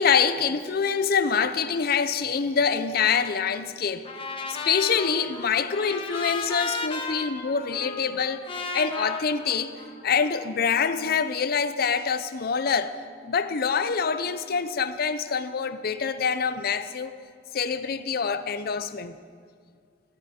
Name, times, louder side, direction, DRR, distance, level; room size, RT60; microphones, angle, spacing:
voice 1, 0.0-4.1 4.7-9.7 10.0-12.9 13.2-17.2 17.5-19.2, left 6 dB, 55° left, 0.5 m, -25 dB
Trumpet, 4.0-10.3, left 3 dB, 30° left, 1.2 m, -35 dB
14.0 x 13.5 x 4.2 m
head